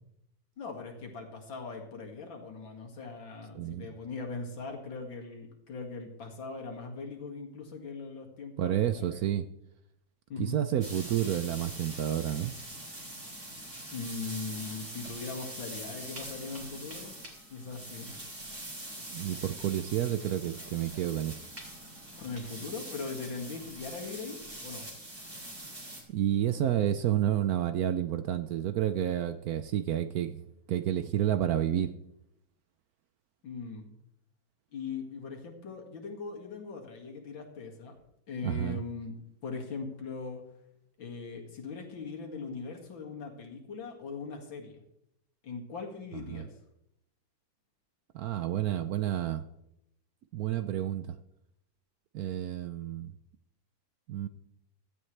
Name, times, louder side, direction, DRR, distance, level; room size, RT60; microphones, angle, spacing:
voice 1, 0.6-9.3 10.3-10.6 13.9-17.2 17.5-18.1 22.2-24.4 24.6-24.9 33.4-33.9 34.7-38.0 38.3-39.2 39.4-40.4 41.0-44.8 45.4-46.5, left 4 dB, 75° left, 2 dB, 2.8 m, -40 dB
voice 2, 3.5-3.9 8.6-9.4 10.4-12.5 19.1-21.4 26.1-30.4 30.7-31.9 38.4-38.8 46.3-46.4 48.1-49.4 50.3-51.2 52.1-53.1 54.1-54.3, right 11 dB, 70° right, 11 dB, 0.9 m, -30 dB
sound 1, 10.8-26.0, right 1 dB, 30° right, 3.0 m, -43 dB
16.5 x 12.5 x 3.3 m, 0.82 s
omnidirectional pair, 2.1 m